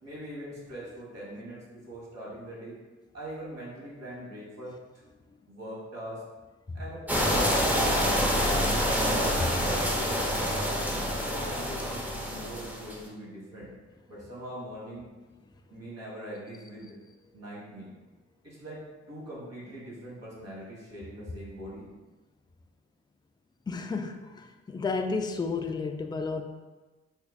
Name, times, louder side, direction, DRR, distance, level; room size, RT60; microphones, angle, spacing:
voice 1, 0.0-2.8 3.1-4.7 5.5-6.2 6.7-7.8 8.2-10.9 11.2-13.7 14.1-15.1 15.7-17.0 17.3-17.9 18.4-21.9, equal, 55° right, -6 dB, 1.5 m, -42 dB
sound 1, 7.1-13.0, equal, 5° right, 0.7 m, -27 dB
voice 2, 23.7-26.4, left 4 dB, 15° left, 5 dB, 0.3 m, -32 dB
4.4 x 2.4 x 2.3 m, 1.2 s
supercardioid pair, 40°, 30 cm